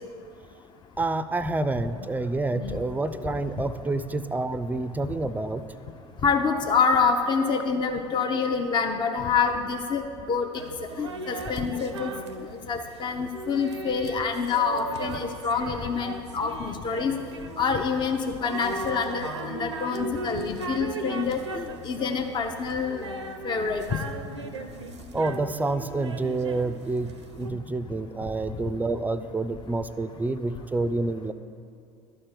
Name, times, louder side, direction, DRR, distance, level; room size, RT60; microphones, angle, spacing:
voice 1, 1.0-5.7 25.1-31.3, right 2 dB, 10° right, 12 dB, 0.5 m, -28 dB
voice 2, 6.2-10.5 11.0-12.1 12.7-17.1 17.6-23.1 23.4-24.0, left 5 dB, 30° left, 4 dB, 0.7 m, -26 dB
sound 1, 10.5-27.5, right 2 dB, 85° right, 0.6 m, -37 dB
12.0 x 4.4 x 8.4 m, 2.4 s
figure-of-eight pair, 65°, 14 cm